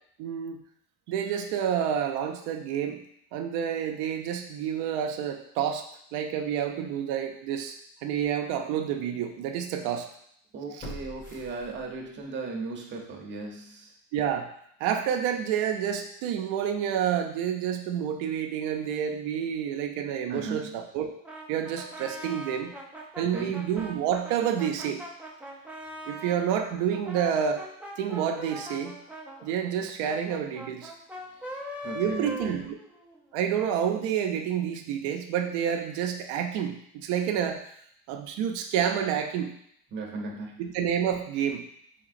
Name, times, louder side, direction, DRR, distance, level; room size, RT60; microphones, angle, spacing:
voice 1, 0.2-0.6 1.1-3.0 3.3-5.9 6.1-7.7 8.0-10.1 10.8-10.9 14.1-14.5 14.8-21.1 21.5-22.7 23.2-25.0 26.1-27.6 28.0-29.0 29.4-30.9 31.9-32.7 33.3-37.6 38.1-39.5 40.6-41.7, right 9 dB, 85° right, 4 dB, 0.5 m, -29 dB
sound 1, 7.5-7.6 8.2-8.3 10.8-12.2 12.6-12.7, equal, 20° left, 0.8 m, -44 dB
voice 2, 10.5-13.9 20.3-20.7 23.3-23.5 31.8-32.6 39.9-40.6, right 3 dB, 30° right, 0 dB, 0.7 m, -36 dB
Brass instrument, 21.2-26.4 26.9-33.2, equal, 5° right, 0.3 m, -41 dB
3.9 x 3.5 x 2.5 m, 0.69 s
cardioid pair, 130°, 37 cm